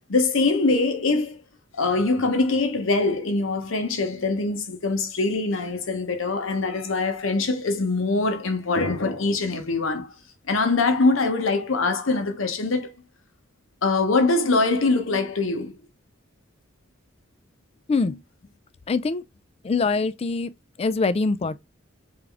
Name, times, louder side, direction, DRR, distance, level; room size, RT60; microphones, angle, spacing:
voice 1, 0.1-1.4 1.8-10.1 10.5-12.9 13.8-15.8, left 3 dB, 70° left, 1.0 m, -23 dB
voice 2, 17.9-18.2 18.9-19.2 19.6-20.5 20.8-21.6, left 4 dB, 30° left, 0.3 m, -23 dB
3.7 x 3.4 x 3.4 m
head